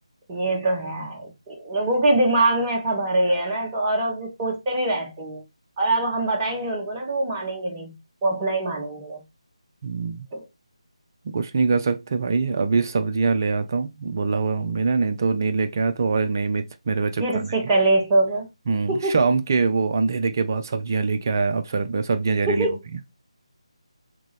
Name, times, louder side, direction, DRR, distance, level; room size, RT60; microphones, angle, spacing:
voice 1, 0.3-5.4 5.8-7.9 8.2-9.2 10.3-10.4 17.2-18.5 18.9-19.2 22.5-22.8, right 2 dB, 15° right, 1.0 m, -23 dB
voice 2, 9.8-10.3 11.2-17.2 18.7-22.7, right 4 dB, 30° right, 0.5 m, -23 dB
3.7 x 3.6 x 3.2 m
figure-of-eight pair, 155°, 3 cm